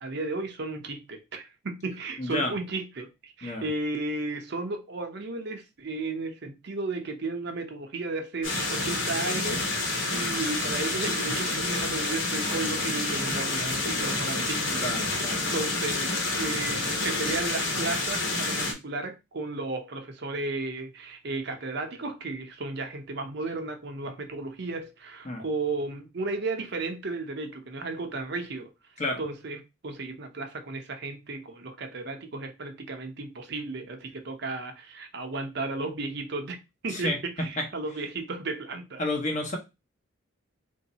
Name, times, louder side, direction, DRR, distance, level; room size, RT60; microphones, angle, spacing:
voice 1, 0.0-28.7 29.2-36.6 36.8-39.1, right 3 dB, 55° right, 0.7 m, -34 dB
voice 2, 2.2-2.5 3.4-3.6 14.8-15.4 25.2-25.4 29.0-29.2 36.9-37.2 37.6-37.7 39.0-39.6, left 1 dB, 35° left, 1.0 m, -30 dB
sound 1, 8.4-18.7, left 2 dB, 70° left, 1.2 m, -28 dB
3.2 x 2.7 x 4.0 m
head